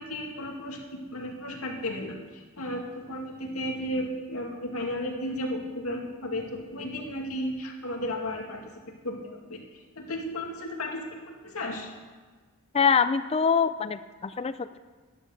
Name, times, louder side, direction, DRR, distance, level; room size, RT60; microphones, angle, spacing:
voice 1, 0.0-11.9, left 1 dB, 80° left, 1 dB, 2.4 m, -34 dB
voice 2, 12.7-14.8, left 6 dB, 25° left, 13 dB, 0.4 m, -24 dB
13.0 x 11.0 x 6.6 m, 1.4 s
head